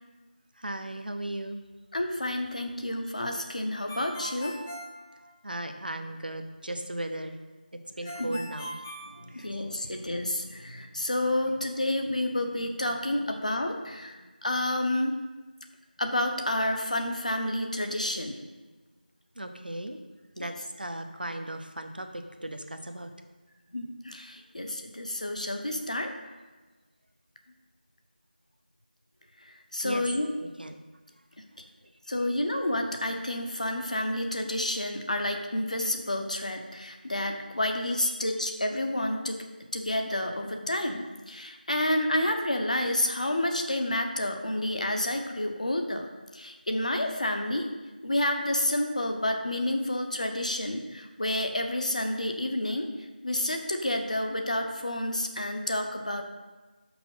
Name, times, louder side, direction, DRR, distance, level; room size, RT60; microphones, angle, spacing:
voice 1, 0.6-1.6 5.4-7.4 8.0-8.7 9.3-9.5 19.4-20.0 20.4-22.1 22.4-23.1 29.8-30.0 30.6-30.8, right 1 dB, 65° right, 6 dB, 0.9 m, -36 dB
voice 2, 1.9-4.6 8.0-8.4 9.2-15.2 16.0-18.4 20.4-20.5 23.7-26.1 29.4-30.3 32.1-39.4 39.7-46.1 46.3-47.7 48.0-52.9 53.2-56.2, left 1 dB, 45° left, 4 dB, 0.9 m, -29 dB
Ringtone, 3.9-5.8 8.1-9.9, equal, 10° left, 0.4 m, -41 dB
5.9 x 5.2 x 5.7 m, 1.3 s
figure-of-eight pair, 170°, 5 cm